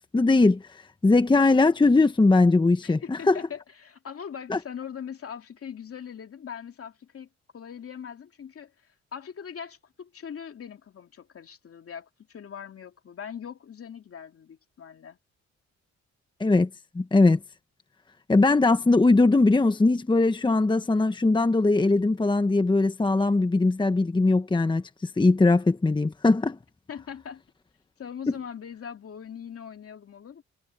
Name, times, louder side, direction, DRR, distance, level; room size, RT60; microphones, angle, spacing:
voice 1, 0.1-3.4 4.5-4.6 16.4-16.7 16.9-17.4 18.3-26.6, left 3 dB, 15° left, 1.0 m, -20 dB
voice 2, 2.8-7.3 7.5-8.7 9.1-15.2 26.9-27.4 28.0-30.4, left 7 dB, 50° left, 2.6 m, -41 dB
cardioid pair, 90°, 30 cm